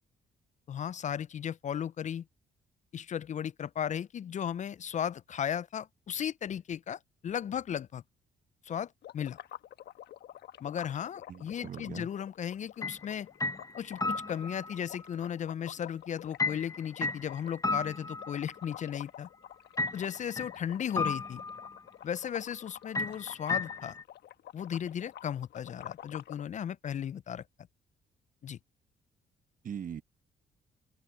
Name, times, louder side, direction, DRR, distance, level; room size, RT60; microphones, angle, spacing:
voice 1, 0.7-2.2 2.9-8.0 8.6-9.4 10.6-13.3 13.8-19.3 19.9-21.4 22.0-24.0 24.5-27.4 28.4-28.6, left 9 dB, 45° left, 0.4 m, -35 dB
sound 1, 9.0-26.4, left 12 dB, 75° left, 1.3 m, -49 dB
voice 2, 11.3-12.1 29.6-30.0, right 8 dB, 55° right, 1.0 m, -41 dB
sound 2, 12.8-13.1 13.4-14.8 16.4-18.7 19.8-20.6 21.0-21.8 22.9-24.0, left 3 dB, 20° left, 0.7 m, -34 dB
supercardioid pair, 70°, 17 cm